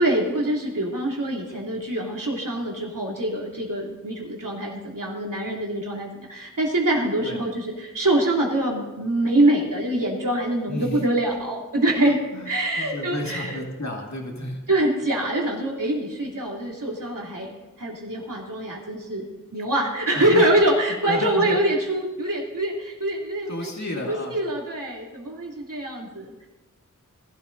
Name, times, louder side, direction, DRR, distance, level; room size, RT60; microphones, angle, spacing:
voice 1, 0.0-12.2 12.4-13.6 14.7-17.5 17.8-23.7 24.1-26.5, right 1 dB, 80° right, -3 dB, 3.1 m, -24 dB
voice 2, 10.7-11.0 11.8-12.5 12.8-14.6 19.6-19.7 20.1-20.5 21.0-21.6 23.5-24.4, left 1 dB, 60° left, 0 dB, 2.2 m, -32 dB
19.5 x 12.5 x 2.7 m, 1.1 s
wide cardioid pair, 60°, 32 cm